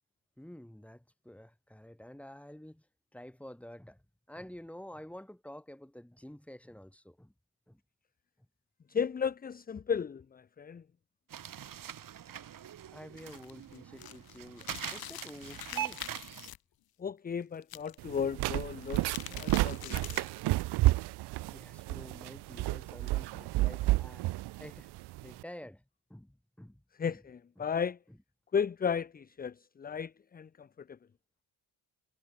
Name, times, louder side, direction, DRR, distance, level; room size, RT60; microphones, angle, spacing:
voice 1, 0.4-2.9 3.1-7.3 7.7-7.8 12.9-16.0 21.5-24.3 24.6-24.9 25.2-25.8 26.1-27.2 27.6-27.7, left 1 dB, 5° left, 2.4 m, -49 dB
voice 2, 8.9-10.8 17.0-20.0 27.0-28.0 28.5-31.0, left 7 dB, 25° left, 0.5 m, -34 dB
sound 1, 11.3-16.5, right 10 dB, 55° right, 1.5 m, -42 dB
sound 2, 13.1-16.6 17.6-18.2 18.7-20.4, left 13 dB, 65° left, 0.9 m, -45 dB
sound 3, 18.0-25.4, right 19 dB, 75° right, 0.6 m, -31 dB
cardioid pair, 75°, 40 cm